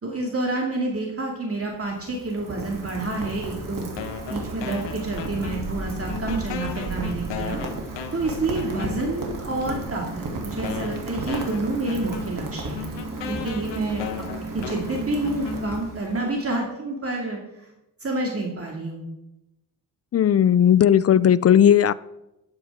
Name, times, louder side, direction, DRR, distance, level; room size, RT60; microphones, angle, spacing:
voice 1, 0.0-3.9 4.3-7.6 8.1-12.9 13.3-14.3 14.5-17.7 18.0-19.0, right 2 dB, 35° right, 0 dB, 2.4 m, -28 dB
Rain, 1.5-16.4, right 2 dB, 50° right, 2.8 m, -34 dB
sound 1, 4.0-5.8 6.1-9.3 10.0-10.1 10.6-16.0, left 6 dB, 85° left, 1.2 m, -36 dB
voice 2, 20.1-21.9, left 9 dB, 35° left, 19 dB, 0.4 m, -16 dB
12.5 x 9.7 x 3.7 m, 0.93 s
cardioid pair, 80°, 42 cm